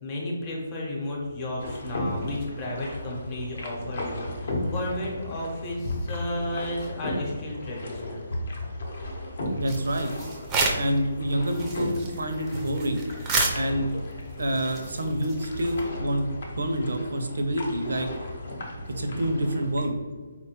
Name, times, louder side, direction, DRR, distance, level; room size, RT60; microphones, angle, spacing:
voice 1, 0.0-8.2, left 1 dB, 20° left, -3 dB, 0.7 m, -33 dB
sound 1, 1.6-19.9, left 1 dB, 55° left, 0.7 m, -35 dB
voice 2, 9.6-10.1 10.8-13.0 13.5-13.9 14.3-16.3 16.5-18.1 19.0-20.0, equal, 80° right, 6 dB, 0.5 m, -27 dB
sound 2, 9.7-11.0 11.3-15.9, right 3 dB, 15° right, 0.4 m, -31 dB
4.2 x 2.2 x 2.8 m, 1.5 s
hypercardioid pair, 160°, 0 cm